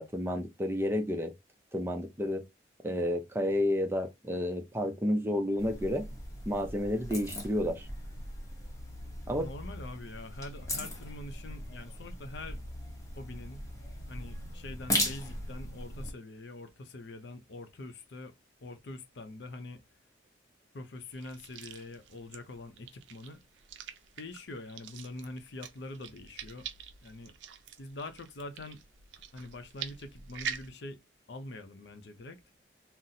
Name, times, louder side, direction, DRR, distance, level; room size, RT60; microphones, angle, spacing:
voice 1, 0.0-1.3 1.7-2.4 2.8-6.1 6.5-7.9 9.3-9.5, left 1 dB, 10° right, 0.4 m, -31 dB
sound 1, 5.6-16.1, left 1 dB, 15° left, 0.7 m, -38 dB
voice 2, 9.3-12.6 13.1-13.6 14.1-19.8 20.7-23.4 24.2-26.7 27.0-27.3 27.8-28.8 29.3-31.0 31.3-32.4, left 2 dB, 65° left, 0.5 m, -44 dB
sound 2, 21.1-30.7, right 7 dB, 75° right, 0.4 m, -45 dB
3.9 x 2.0 x 2.6 m
head